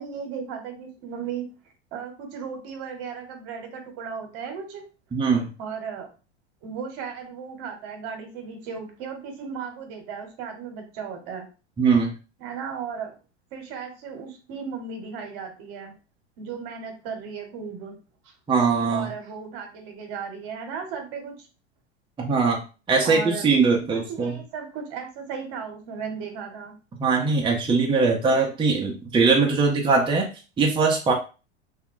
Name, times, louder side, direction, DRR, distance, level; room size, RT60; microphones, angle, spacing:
voice 1, 0.0-1.5 1.9-4.8 5.6-6.1 6.6-11.5 12.4-13.1 13.5-15.9 16.4-18.0 18.2-18.3 18.9-21.5 23.0-23.5 23.8-26.7, right 6 dB, 55° right, 4 dB, 1.1 m, -35 dB
voice 2, 5.1-5.5 11.8-12.1 18.5-19.1 22.2-22.6 22.9-24.3 27.0-30.3 30.6-31.1, right 4 dB, 15° right, 0 dB, 0.6 m, -21 dB
2.4 x 2.1 x 3.7 m, 0.33 s
hypercardioid pair, 95°, 34 cm